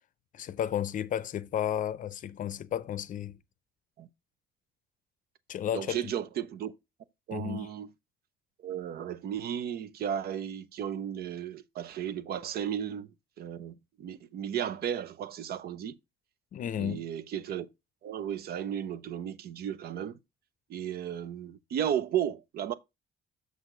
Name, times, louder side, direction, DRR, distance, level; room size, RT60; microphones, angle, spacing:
voice 1, 0.3-3.4 5.5-6.1 7.3-7.7 16.5-17.0, left 10 dB, 50° left, 0.6 m, -33 dB
voice 2, 5.7-6.7 7.3-7.9 8.6-13.1 13.4-15.9 16.8-17.7 18.0-20.2 20.7-22.7, right 9 dB, 65° right, 0.7 m, -34 dB
6.7 x 6.4 x 3.8 m
cardioid pair, 155°, 18 cm